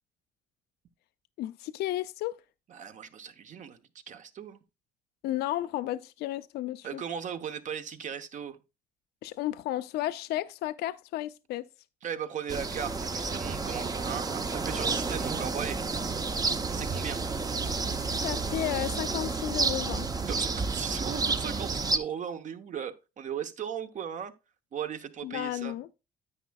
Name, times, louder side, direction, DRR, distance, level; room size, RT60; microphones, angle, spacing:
voice 1, 1.4-2.3 5.2-7.0 9.2-11.6 18.2-20.1 25.2-25.9, left 14 dB, 75° left, 0.5 m, -33 dB
voice 2, 2.7-3.8 4.1-4.6 6.8-8.6 12.0-15.8 16.7-17.2 20.2-24.3 24.7-25.8, right 8 dB, 45° right, 1.0 m, -37 dB
sound 1, 12.5-22.0, right 4 dB, 20° right, 0.7 m, -30 dB
9.9 x 8.6 x 2.3 m
cardioid pair, 110°, 17 cm